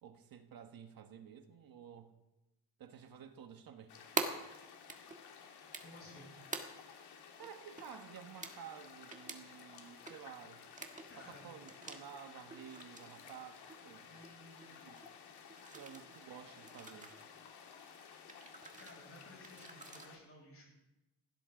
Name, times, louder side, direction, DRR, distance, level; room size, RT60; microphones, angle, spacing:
voice 1, 0.0-2.2 2.8-4.0 7.4-10.7 11.2-14.2 14.7-15.0 15.7-17.2, right 8 dB, 55° right, 6 dB, 1.4 m, -52 dB
sound 1, 3.9-20.2, left 6 dB, 70° left, 2.6 m, -55 dB
sound 2, 4.2-4.3 4.9-5.2 5.7-6.1 6.5-6.6 7.0-7.1 7.4-7.5 7.8-8.1 8.4-8.5 9.1-9.4 9.8-10.2 10.7-11.2 11.6-12.0 12.5-13.4 13.7-14.3 14.6-14.7 15.0-15.1 15.5-16.2 16.6-17.2 18.3-19.0 19.4-20.1, right 3 dB, 20° right, 1.5 m, -43 dB
voice 2, 5.8-6.3 11.1-11.5 14.1-14.8 18.8-20.9, left 1 dB, 35° left, -2 dB, 6.9 m, -56 dB
20.0 x 16.5 x 3.9 m, 1.0 s
cardioid pair, 170°, 41 cm